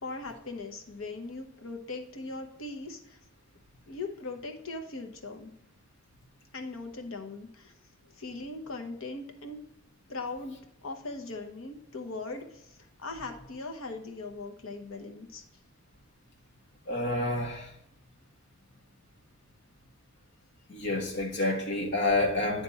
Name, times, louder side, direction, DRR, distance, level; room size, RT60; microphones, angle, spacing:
voice 1, 0.0-3.2 3.9-5.5 6.5-7.7 8.2-9.6 10.1-15.4, left 3 dB, 75° left, 1.0 m, -40 dB
voice 2, 16.9-17.7 20.7-22.6, left 2 dB, 60° left, 1.4 m, -28 dB
9.8 x 3.4 x 4.1 m
head